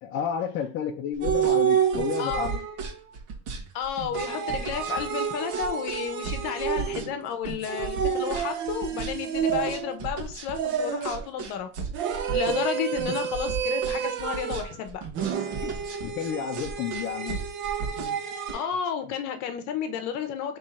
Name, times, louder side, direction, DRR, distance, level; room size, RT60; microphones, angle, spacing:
voice 1, 0.0-2.7 15.6-17.4, left 8 dB, 35° left, 2 dB, 0.6 m, -31 dB
sound 1, 1.1-18.5, right 4 dB, 55° right, 1.4 m, -36 dB
sound 2, 1.2-2.9 4.1-7.2 7.7-10.0 10.5-11.3 11.9-14.7 15.1-18.7, right 8 dB, 35° right, 0.6 m, -29 dB
voice 2, 3.7-11.7 12.3-15.1 18.5-20.6, left 8 dB, 50° left, 8 dB, 0.9 m, -32 dB
3.6 x 3.2 x 4.2 m, 0.35 s
supercardioid pair, 145°, 37 cm